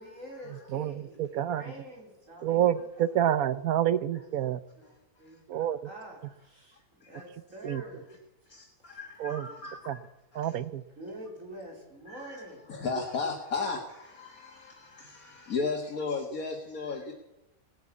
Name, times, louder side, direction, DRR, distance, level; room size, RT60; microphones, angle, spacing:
voice 1, 0.0-2.8 4.8-8.1 11.0-12.6, equal, 60° right, -1 dB, 4.7 m, -46 dB
voice 2, 0.7-1.6 2.4-4.6 5.5-5.8 7.6-7.8 9.2-9.5 9.9-10.0 10.3-10.8, right 11 dB, 75° right, 15 dB, 1.2 m, -28 dB
voice 3, 9.3-9.7 12.8-13.8 15.5-17.1, left 4 dB, 70° left, 2 dB, 2.1 m, -32 dB
18.5 x 9.4 x 8.4 m, 0.93 s
omnidirectional pair, 1.5 m